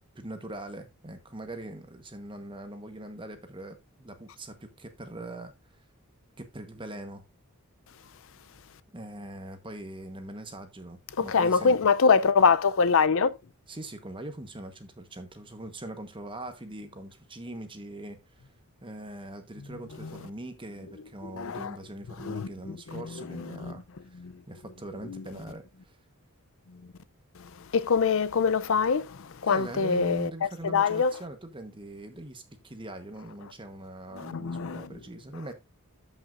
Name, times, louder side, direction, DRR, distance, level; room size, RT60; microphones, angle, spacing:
voice 1, 0.1-5.5 6.4-7.2 8.9-11.8 13.7-18.2 18.8-23.8 24.1-24.2 24.5-25.6 29.5-35.6, right 1 dB, 25° right, 1.2 m, -41 dB
voice 2, 11.2-13.3 20.0-20.1 21.2-21.8 22.2-23.7 24.2-24.4 25.0-25.2 27.4-31.2 34.2-34.9, left 5 dB, 60° left, 0.6 m, -25 dB
13.5 x 5.6 x 2.5 m
head